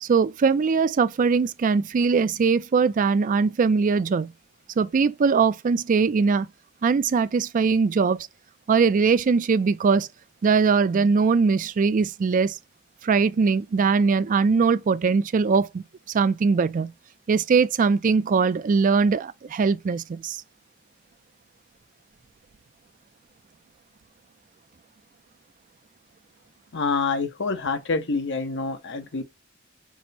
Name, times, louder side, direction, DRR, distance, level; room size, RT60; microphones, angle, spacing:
voice 1, 0.0-4.3 4.8-6.5 6.8-8.2 8.7-10.1 10.4-12.6 13.0-16.9 17.3-20.4, right 5 dB, 40° right, 0.3 m, -21 dB
voice 2, 26.7-29.2, left 4 dB, 60° left, 0.8 m, -27 dB
6.0 x 2.0 x 4.1 m
head